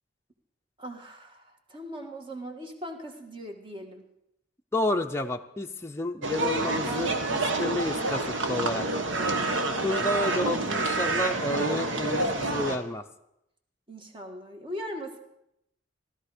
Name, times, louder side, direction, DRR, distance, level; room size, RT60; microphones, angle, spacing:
voice 1, 0.8-4.1 6.8-7.8 8.0-10.0 13.9-15.2, equal, 25° right, 4 dB, 1.7 m, -40 dB
voice 2, 4.7-7.1 7.6-8.2 8.5-8.9 9.8-13.0, left 1 dB, 15° left, 3 dB, 0.6 m, -30 dB
sound 1, 6.2-12.8, right 2 dB, 80° right, 1.3 m, -28 dB
16.0 x 13.0 x 5.0 m, 0.82 s
head